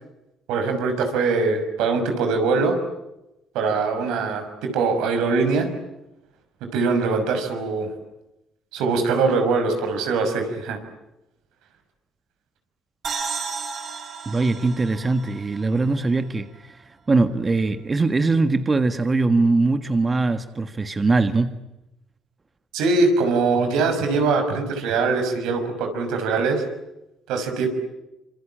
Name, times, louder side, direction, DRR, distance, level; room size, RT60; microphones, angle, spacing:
voice 1, 0.5-2.8 3.5-5.7 6.7-7.9 8.7-10.8 22.7-26.7 27.3-27.7, right 4 dB, 85° right, 6 dB, 6.0 m, -22 dB
sound 1, 13.0-16.6, right 5 dB, 50° right, 7.3 m, -33 dB
voice 2, 14.2-16.8 17.1-21.6, right 3 dB, 25° right, 9 dB, 1.6 m, -21 dB
26.5 x 25.5 x 8.9 m, 0.93 s
cardioid pair, 85°, 0 cm